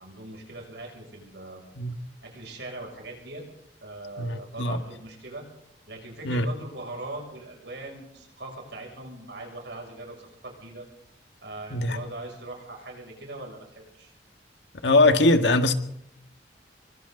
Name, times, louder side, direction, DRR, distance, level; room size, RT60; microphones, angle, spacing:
voice 1, 0.0-1.7 2.2-3.5 3.8-5.5 5.9-10.9 11.4-14.1, right 2 dB, 70° right, 7.1 m, -40 dB
voice 2, 4.2-4.8 6.2-6.4 11.7-12.0 14.8-15.7, left 2 dB, 75° left, 1.8 m, -21 dB
27.0 x 24.0 x 4.1 m
head